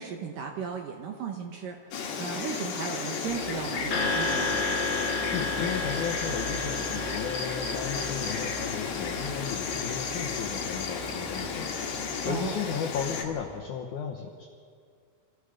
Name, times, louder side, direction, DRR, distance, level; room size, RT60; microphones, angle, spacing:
voice 1, 0.0-4.6 12.3-12.6, right 6 dB, 70° right, 3 dB, 2.3 m, -36 dB
Insect, 1.9-13.2, left 5 dB, 60° left, 3.1 m, -33 dB
sound 1, 3.3-13.6, right 1 dB, 15° left, 2.6 m, -43 dB
sound 2, 3.9-10.3, left 3 dB, 40° left, 3.8 m, -33 dB
voice 2, 5.3-14.5, left 7 dB, 75° left, 1 dB, 1.8 m, -35 dB
26.0 x 15.5 x 6.6 m, 2.2 s
omnidirectional pair, 5.1 m